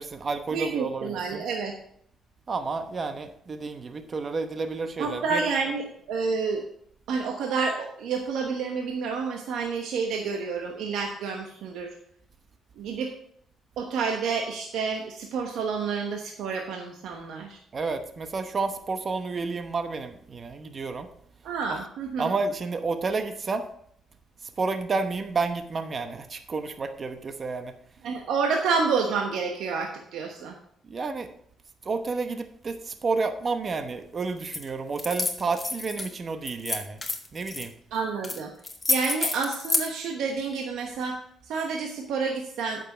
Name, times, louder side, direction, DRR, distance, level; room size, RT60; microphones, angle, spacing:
voice 1, 0.0-1.4 2.5-5.5 17.7-21.1 21.7-21.8 22.2-23.7 24.6-27.7 30.9-31.3 31.8-37.0 37.3-37.7, right 4 dB, 40° right, 8 dB, 0.9 m, -30 dB
voice 2, 0.5-1.7 5.0-6.6 7.1-11.9 12.8-13.1 13.8-17.6 21.4-22.3 28.0-30.6 37.9-38.5 38.9-41.2 41.4-42.8, right 5 dB, 85° right, 2 dB, 1.1 m, -29 dB
sound 1, 34.5-34.6 35.0-36.1 36.5-37.7 38.2-38.4 38.6-39.9, left 2 dB, 20° left, 1.4 m, -28 dB
8.9 x 6.5 x 5.0 m, 0.66 s
cardioid pair, 90°, 0 cm